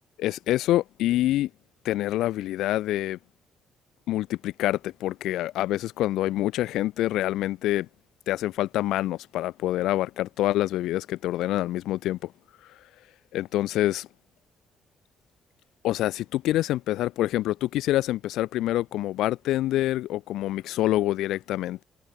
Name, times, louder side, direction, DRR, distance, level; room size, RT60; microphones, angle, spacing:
voice 1, 0.2-1.5 1.8-3.2 4.1-7.9 8.3-12.3 13.3-14.1 15.8-21.8, left 15 dB, 90° left, 3.6 m, -26 dB
cardioid pair, 90°, 0 cm